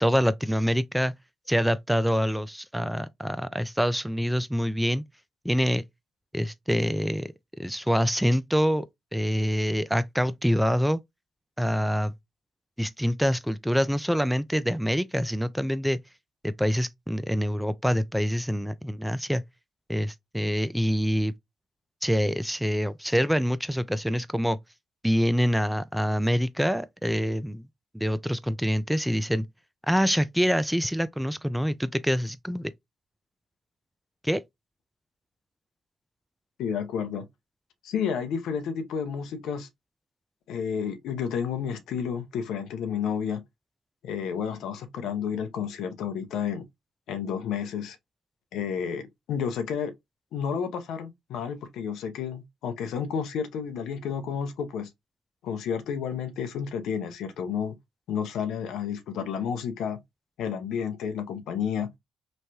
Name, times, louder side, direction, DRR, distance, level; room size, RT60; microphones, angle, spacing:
voice 1, 0.0-1.1 1.5-5.0 5.4-5.8 6.3-7.3 7.6-8.9 9.1-11.0 11.6-12.1 12.8-16.0 16.4-19.4 19.9-21.3 22.0-24.6 25.0-27.7 27.9-29.5 29.9-32.7 34.2-34.4, equal, 5° right, 0.3 m, -25 dB
voice 2, 36.6-37.3 37.8-39.7 40.5-43.4 44.0-46.6 47.1-48.0 48.5-49.9 50.3-54.9 55.4-57.7 58.1-60.0 60.4-61.9, left 7 dB, 75° left, 0.6 m, -31 dB
3.1 x 2.1 x 2.7 m
supercardioid pair, 50°, 0 cm